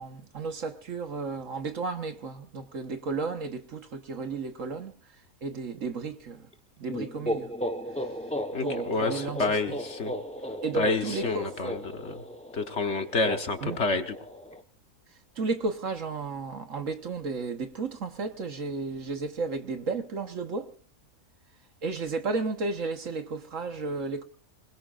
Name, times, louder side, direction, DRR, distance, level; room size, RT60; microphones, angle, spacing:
voice 1, 0.0-4.9 5.4-6.5 6.8-7.5 8.0-8.1 8.6-9.8 10.6-11.6 13.6-13.8 15.4-20.7 21.8-24.2, right 4 dB, 55° right, 1.6 m, -33 dB
sound 1, 6.9-14.6, equal, 5° left, 0.8 m, -35 dB
voice 2, 8.5-10.1 10.7-12.2 12.5-14.1, left 3 dB, 50° left, 1.4 m, -29 dB
26.5 x 20.5 x 2.5 m
omnidirectional pair, 1.6 m